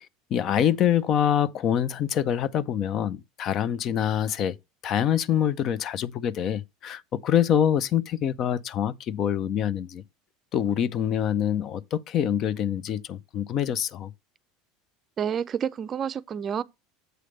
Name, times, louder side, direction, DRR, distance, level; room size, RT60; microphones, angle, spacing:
voice 1, 0.0-4.6 4.8-10.0 10.5-14.1, left 9 dB, 50° left, 0.5 m, -25 dB
voice 2, 15.2-16.6, right 8 dB, 35° right, 0.4 m, -29 dB
7.8 x 3.3 x 6.4 m
supercardioid pair, 100°, 0 cm